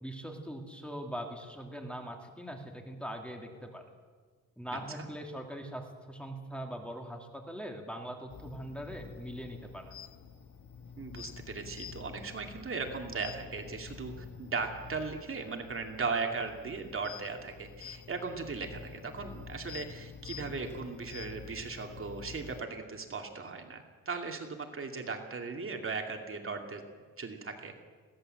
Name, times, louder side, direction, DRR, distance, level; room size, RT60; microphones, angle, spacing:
voice 1, 0.0-3.8 4.6-10.0, equal, 5° left, 2 dB, 2.5 m, -41 dB
voice 2, 4.7-5.1 11.0-26.8 27.2-27.7, right 4 dB, 40° right, 3 dB, 2.5 m, -38 dB
sound 1, 8.3-22.6, left 6 dB, 60° left, 1.7 m, -48 dB
21.5 x 17.0 x 7.8 m, 1.5 s
cardioid pair, 120°, 33 cm